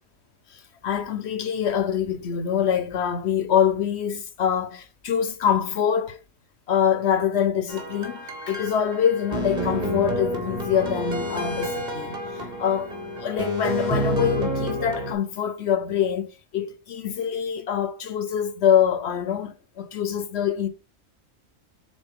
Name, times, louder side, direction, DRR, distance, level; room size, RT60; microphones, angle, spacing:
voice 1, 0.5-6.2 6.7-16.3 16.5-20.7, left 8 dB, 60° left, 0.8 m, -25 dB
sound 1, 7.7-15.1, equal, 30° right, 1.6 m, -29 dB
7.1 x 3.9 x 3.5 m
omnidirectional pair, 1.4 m